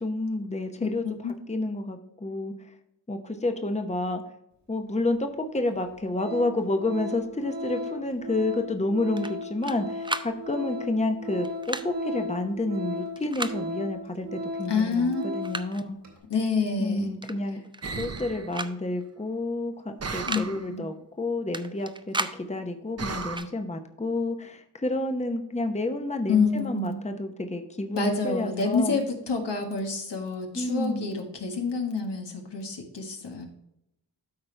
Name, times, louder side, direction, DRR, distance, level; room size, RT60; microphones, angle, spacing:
voice 1, 0.0-1.1 1.5-2.5 3.1-4.2 4.7-16.0 16.8-17.6 18.0-29.0 30.5-31.1, left 2 dB, 15° left, 6 dB, 0.9 m, -30 dB
Organ, 5.1-5.2 5.7-5.8 6.1-15.7 16.0-16.2, left 1 dB, 85° right, 2.7 m, -36 dB
sound 1, 9.2-9.8 10.0-10.3 11.4-11.9 13.2-13.6 14.7-14.8 15.2-15.8 17.2-17.4 17.6-18.2 18.5-18.7 19.0-19.1 20.1-20.5 21.5-22.4 23.2-23.5, right 2 dB, 10° right, 0.5 m, -34 dB
voice 2, 14.7-15.2 16.3-17.1 20.3-20.4 20.7-20.8 26.3-27.0 27.9-33.5, left 4 dB, 80° left, 2 dB, 1.7 m, -28 dB
sound 2, 17.8-18.5 20.0-20.7 23.0-23.4, right 4 dB, 35° right, 0.8 m, -34 dB
12.5 x 4.3 x 3.3 m, 0.83 s
wide cardioid pair, 70°, 42 cm